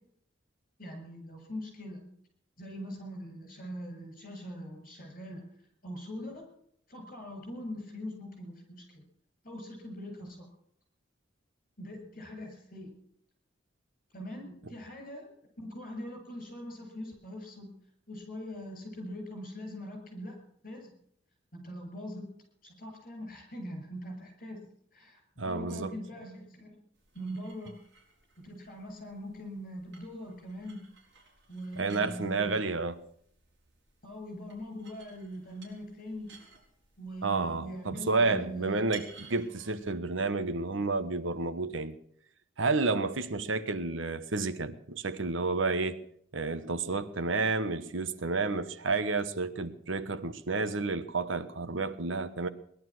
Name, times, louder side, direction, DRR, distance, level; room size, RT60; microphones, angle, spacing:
voice 1, 0.8-2.1 2.6-5.5 5.8-6.5 6.9-9.0 9.4-10.5 11.8-13.0 14.1-15.3 15.6-17.7 18.1-20.9 21.5-22.3 22.6-24.6 24.9-26.8 27.1-27.7 28.4-30.8 31.5-32.7 34.0-36.3 37.0-38.7, equal, 45° left, 7.5 m, -42 dB
voice 2, 25.4-25.9 31.8-32.9 37.2-41.9 42.6-46.0 46.3-52.5, right 3 dB, 85° right, 1.1 m, -30 dB
sound 1, 26.9-39.9, right 5 dB, 60° right, 5.0 m, -56 dB
19.0 x 12.0 x 6.2 m
head